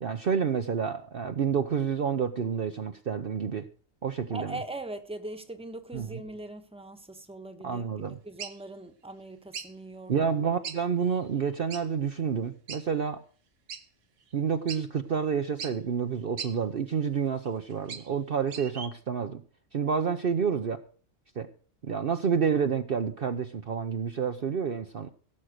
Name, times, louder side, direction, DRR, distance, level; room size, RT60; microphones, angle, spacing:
voice 1, 0.0-3.7 4.0-4.6 5.9-6.2 7.6-8.2 10.1-13.2 14.3-19.4 19.7-20.8 21.4-21.5 21.8-25.1, right 6 dB, 50° right, 0.9 m, -29 dB
voice 2, 4.3-10.1, right 2 dB, 5° right, 1.3 m, -41 dB
sound 1, 8.4-8.6 9.5-9.7 10.6-10.8 11.1-11.2 11.7-11.8 12.7-12.8 13.7-13.8 14.3-14.4 14.7-14.8 15.6-15.7 16.4-16.5 17.4-18.1 18.5-18.9, right 6 dB, 70° right, 1.6 m, -38 dB
17.5 x 7.5 x 6.5 m
omnidirectional pair, 1.3 m